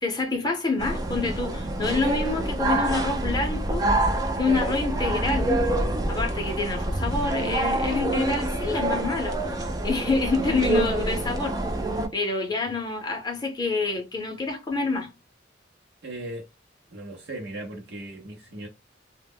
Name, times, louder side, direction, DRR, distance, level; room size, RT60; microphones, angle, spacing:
voice 1, 0.0-3.9 4.4-5.5 6.1-11.6 12.1-15.1, left 3 dB, 20° left, 0.6 m, -27 dB
sound 1, 0.8-12.1, right 2 dB, 20° right, 0.4 m, -26 dB
voice 2, 16.0-16.4 16.9-18.7, right 1 dB, 60° right, 0.7 m, -37 dB
2.1 x 2.0 x 3.4 m
head